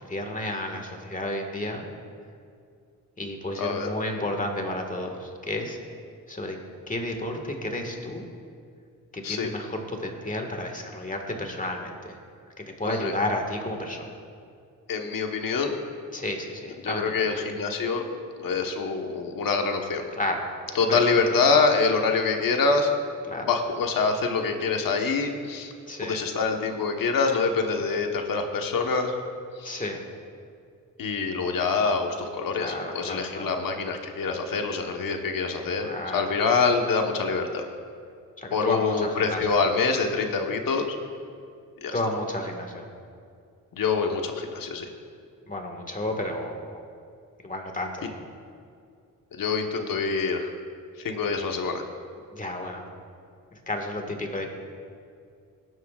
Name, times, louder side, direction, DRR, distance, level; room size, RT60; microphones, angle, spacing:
voice 1, 0.0-1.9 3.2-5.8 6.3-6.6 6.9-8.3 9.1-12.2 12.6-14.2 16.1-17.3 20.2-20.5 20.8-21.0 23.3-23.5 25.9-26.2 29.6-30.0 32.6-33.5 35.8-36.3 38.4-39.6 41.9-42.9 45.5-46.8 47.4-48.2 52.3-53.0 53.5-54.5, left 1 dB, 20° left, 3 dB, 1.8 m, -32 dB
voice 2, 3.6-3.9 9.2-9.5 12.8-13.1 14.9-15.8 16.8-18.0 18.4-20.0 20.7-22.9 23.4-25.7 26.0-29.1 29.6-29.8 31.0-37.6 38.5-40.8 41.8-41.9 43.8-44.9 49.3-50.5 51.0-51.8, left 4 dB, 70° left, 3 dB, 1.3 m, -25 dB
17.5 x 11.0 x 2.5 m, 2.3 s
cardioid pair, 75°, 35 cm